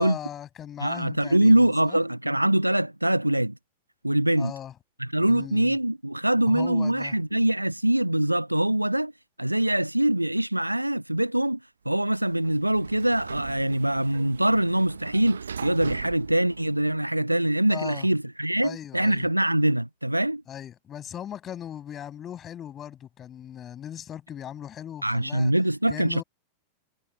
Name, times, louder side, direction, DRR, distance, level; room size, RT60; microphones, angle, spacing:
voice 1, 0.0-2.0 4.4-4.7 5.2-5.8 6.4-7.2 17.7-18.1 18.6-19.3 20.5-25.5 25.9-26.2, left 10 dB, 25° left, 7.8 m, -38 dB
voice 2, 0.8-3.6 4.0-4.5 5.0-9.1 9.4-11.6 11.9-20.4 25.0-26.2, right 1 dB, 85° right, 0.3 m, -23 dB
Sliding door, 12.0-17.3, right 6 dB, 70° right, 1.0 m, -39 dB
figure-of-eight pair, 90°, 0 cm